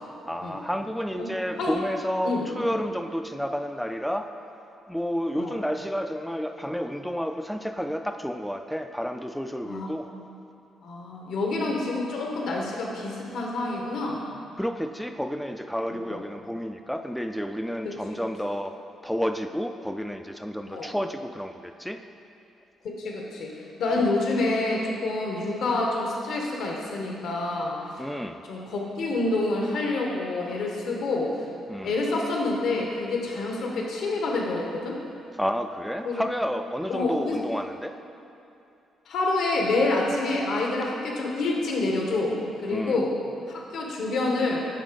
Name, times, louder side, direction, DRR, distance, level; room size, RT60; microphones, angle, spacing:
voice 1, 0.3-4.3 4.9-10.1 14.6-18.7 19.0-22.0 23.9-24.1 28.0-28.4 31.7-32.0 35.4-37.9 42.7-43.0, equal, ahead, 6 dB, 0.3 m, -30 dB
voice 2, 9.6-10.0 10.8-14.2 16.1-16.2 17.8-18.0 20.7-20.9 22.8-23.5 23.8-27.8 28.5-31.4 31.8-35.0 36.0-36.2 36.9-37.4 39.1-43.1 43.5-44.6, left 2 dB, 75° left, -1 dB, 1.3 m, -27 dB
9.0 x 3.6 x 5.2 m, 2.8 s
cardioid pair, 90°, 0 cm